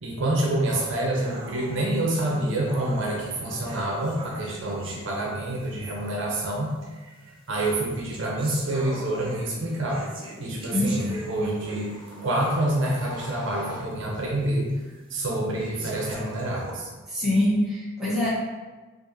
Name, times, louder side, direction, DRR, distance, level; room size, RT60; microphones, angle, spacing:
voice 1, 0.0-6.7 7.2-10.0 10.4-11.9 12.2-14.7 15.1-16.9, right 1 dB, 60° right, -3 dB, 0.7 m, -27 dB
sound 1, 0.7-5.8 6.7-6.8 7.6-12.9 13.3-13.4 13.9-14.0 14.7-14.8 15.5-16.7, right 1 dB, 25° right, 0.4 m, -42 dB
voice 2, 10.6-10.9 17.1-18.3, left 1 dB, ahead, -10 dB, 1.1 m, -24 dB
sound 2, 11.1-14.3, left 2 dB, 20° left, 1.1 m, -43 dB
4.6 x 2.5 x 2.7 m, 1.3 s
head